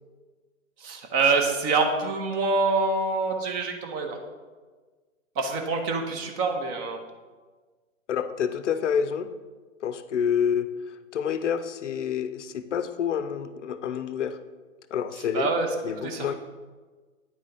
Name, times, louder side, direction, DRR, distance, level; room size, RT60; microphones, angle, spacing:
voice 1, 0.8-4.2 5.4-7.0 15.2-16.3, right 3 dB, 20° right, 4 dB, 0.6 m, -26 dB
voice 2, 8.1-9.3 9.8-10.7 11.1-14.4 14.9-15.5 15.8-16.3, left 8 dB, 60° left, 12 dB, 0.6 m, -28 dB
9.2 x 4.2 x 3.8 m, 1.4 s
figure-of-eight pair, 120°, 40 cm